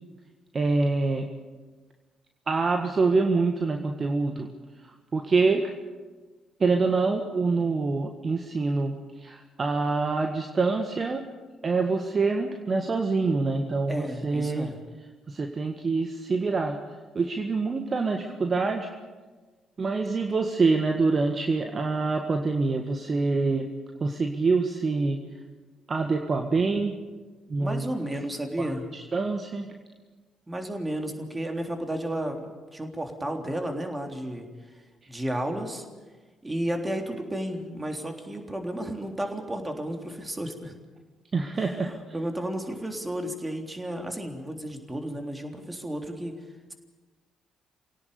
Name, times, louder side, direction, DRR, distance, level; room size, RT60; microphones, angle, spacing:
voice 1, 0.5-1.3 2.5-4.5 5.1-5.7 6.6-8.9 9.2-11.2 11.6-14.7 15.3-16.8 17.1-18.9 19.8-23.7 24.0-25.2 25.9-26.9 27.5-27.9 28.6-28.7 28.9-29.7 41.3-41.9, right 3 dB, 35° right, 4 dB, 1.7 m, -25 dB
voice 2, 13.9-14.8 26.5-26.6 27.6-28.9 30.5-34.8 35.1-35.9 36.4-40.8 41.5-46.3, right 1 dB, 15° right, 4 dB, 3.6 m, -33 dB
27.0 x 17.5 x 7.0 m, 1.3 s
figure-of-eight pair, 45°, 0 cm